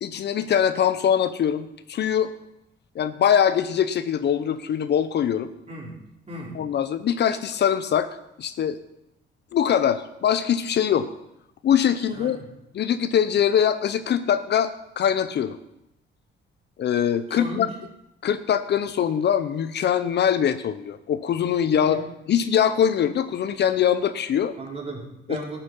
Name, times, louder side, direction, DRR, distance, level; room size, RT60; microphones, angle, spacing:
voice 1, 0.0-2.3 2.9-5.5 6.5-8.1 8.4-8.8 9.5-11.1 11.6-12.4 12.7-15.6 16.8-17.7 18.2-22.0 22.3-24.6 25.3-25.4, left 9 dB, 60° left, 12 dB, 0.7 m, -22 dB
voice 2, 5.7-6.0 6.3-6.6 12.1-12.5 17.3-17.6 21.8-22.0 24.6-25.6, right 2 dB, 30° right, -3 dB, 4.1 m, -36 dB
12.5 x 8.5 x 5.4 m, 0.84 s
cardioid pair, 90°, 20 cm